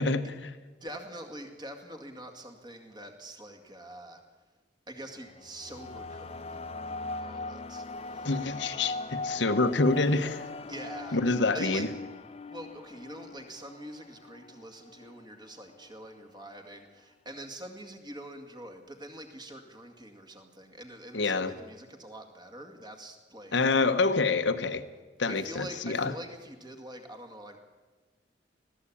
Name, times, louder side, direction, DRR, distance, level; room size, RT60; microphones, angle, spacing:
voice 1, 0.0-0.5 8.2-10.5 11.1-11.9 21.1-21.5 23.5-24.8 25.2-26.1, left 3 dB, 70° left, 10 dB, 1.1 m, -27 dB
voice 2, 0.6-4.2 4.9-8.4 10.6-11.2 11.5-11.9 12.5-23.5 25.3-27.6, right 1 dB, 25° right, 5 dB, 2.1 m, -45 dB
sound 1, 5.0-15.2, left 3 dB, 35° left, 0.6 m, -40 dB
20.0 x 15.0 x 8.6 m, 1.3 s
head